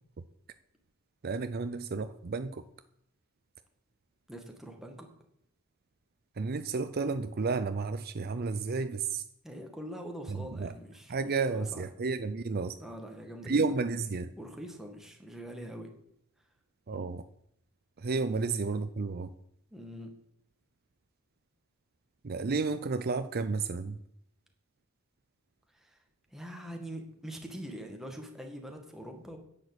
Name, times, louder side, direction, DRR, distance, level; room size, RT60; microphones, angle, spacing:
voice 1, 1.2-2.6 6.4-9.2 10.3-10.7 11.1-12.7 13.5-14.3 16.9-17.2 18.0-19.3 22.2-24.0, right 4 dB, 45° right, 11 dB, 0.5 m, -32 dB
voice 2, 4.3-5.1 9.4-11.8 12.8-13.7 14.4-15.9 19.7-20.1 25.7-26.0 26.3-29.4, equal, ahead, 2 dB, 1.9 m, -43 dB
10.5 x 7.3 x 8.1 m, 0.74 s
head